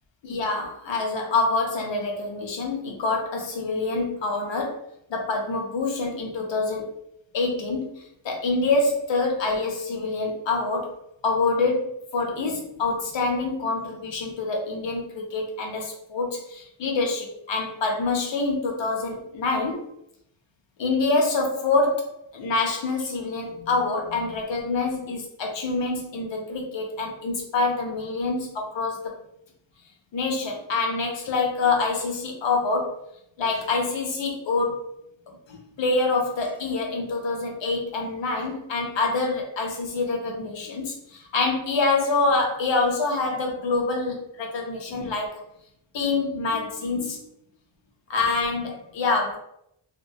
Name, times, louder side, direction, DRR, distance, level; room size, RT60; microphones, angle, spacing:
voice 1, 0.3-4.8 5.1-7.0 7.3-11.0 11.2-19.9 20.8-29.1 30.1-33.0 33.4-34.9 35.3-45.4 45.9-47.2 48.1-49.4, left 3 dB, 70° left, 1 dB, 0.7 m, -26 dB
2.3 x 2.2 x 2.7 m, 0.77 s
wide cardioid pair, 165°, 46 cm